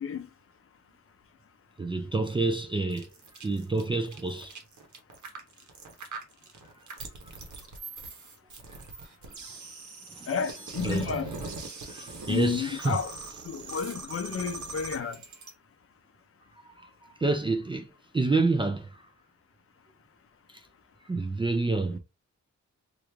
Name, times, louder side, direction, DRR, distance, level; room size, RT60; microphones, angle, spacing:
voice 1, 1.8-3.1 3.4-4.6 10.1-10.3 10.8-11.1 11.8-13.0 13.7-13.8 16.8-16.9 17.2-17.9 18.1-19.0 21.1-22.0, right 3 dB, 15° right, 0.3 m, -28 dB
sound 1, 2.9-15.5, right 3 dB, 75° right, 1.0 m, -41 dB
voice 2, 10.3-11.3 12.3-13.1 13.4-15.2, left 7 dB, 50° left, 0.5 m, -31 dB
3.0 x 2.4 x 3.3 m
wide cardioid pair, 170°, 30 cm